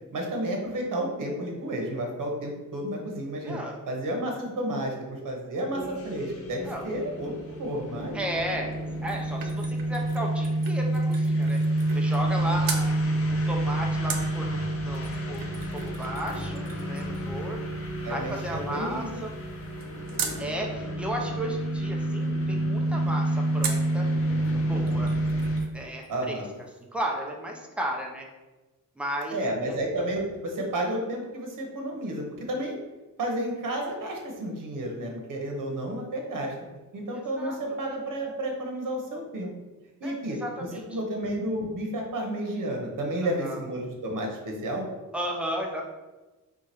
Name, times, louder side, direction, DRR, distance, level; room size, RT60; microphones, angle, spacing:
voice 1, 0.1-3.6 3.9-8.2 18.0-19.2 26.1-26.4 29.3-32.8 33.2-36.5 36.9-39.5 40.0-40.4 40.9-44.9, right 1 dB, 70° right, 1 dB, 1.0 m, -31 dB
voice 2, 3.4-3.8 6.6-6.9 8.1-12.9 13.3-17.7 18.1-19.3 20.4-24.1 24.5-25.1 25.7-26.4 26.9-28.3 29.0-29.8 37.1-37.6 40.0-41.3 43.2-43.6 45.1-45.8, equal, 5° right, 0 dB, 0.6 m, -34 dB
sound 1, 5.7-25.6, right 1 dB, 45° left, 0.6 m, -29 dB
sound 2, 8.7-12.4 12.6-12.9 14.1-20.4 23.6-24.0 24.4-24.5 24.8-25.8 26.0-26.1, right 6 dB, 85° right, 0.6 m, -39 dB
4.6 x 2.4 x 4.3 m, 1.1 s
wide cardioid pair, 160°, 33 cm